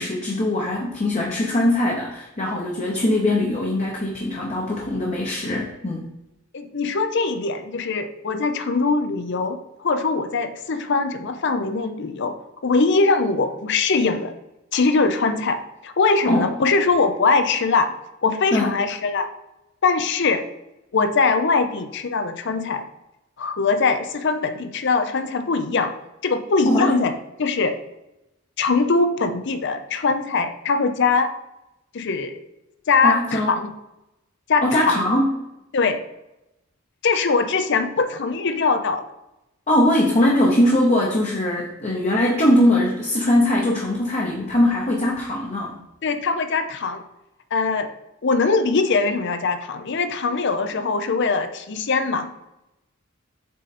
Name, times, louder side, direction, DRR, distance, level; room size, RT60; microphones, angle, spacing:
voice 1, 0.0-6.1 16.3-16.5 18.5-18.8 26.6-26.9 33.0-33.5 34.6-35.3 39.7-45.7, left 1 dB, 35° left, -2 dB, 0.9 m, -21 dB
voice 2, 6.5-12.3 12.6-14.3 14.7-17.9 18.2-19.3 19.8-20.4 20.9-22.8 23.4-25.9 26.2-27.1 27.4-27.7 28.6-31.3 31.9-32.4 32.9-33.7 34.5-35.0 35.7-36.0 37.0-39.0 46.0-47.0 47.5-47.9 48.2-52.3, left 4 dB, 60° left, 9 dB, 0.6 m, -21 dB
7.6 x 3.9 x 4.2 m, 0.91 s
head